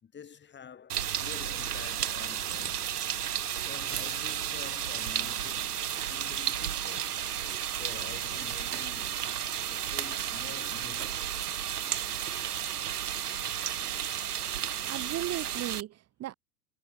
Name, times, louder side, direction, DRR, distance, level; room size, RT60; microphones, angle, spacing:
voice 1, 0.0-2.8 3.6-7.2 7.5-9.4 9.7-11.5, left 7 dB, 25° left, 6.0 m, -48 dB
sound 1, 0.9-15.8, right 10 dB, 85° right, 0.7 m, -33 dB
voice 2, 14.8-16.3, right 14 dB, 35° right, 2.0 m, -36 dB
figure-of-eight pair, 90°, 45 cm